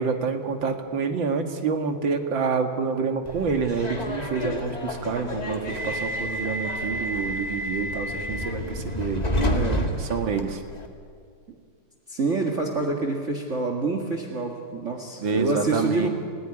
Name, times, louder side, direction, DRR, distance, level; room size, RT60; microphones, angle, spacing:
voice 1, 0.0-9.6 10.0-10.6 15.2-16.1, right 5 dB, 60° right, 6 dB, 2.5 m, -27 dB
Subway metro underground, 3.3-10.9, equal, 20° left, 2.0 m, -30 dB
voice 2, 9.4-9.9 12.1-16.1, right 3 dB, 35° right, 2 dB, 2.2 m, -27 dB
29.0 x 15.0 x 9.9 m, 2.1 s
omnidirectional pair, 2.4 m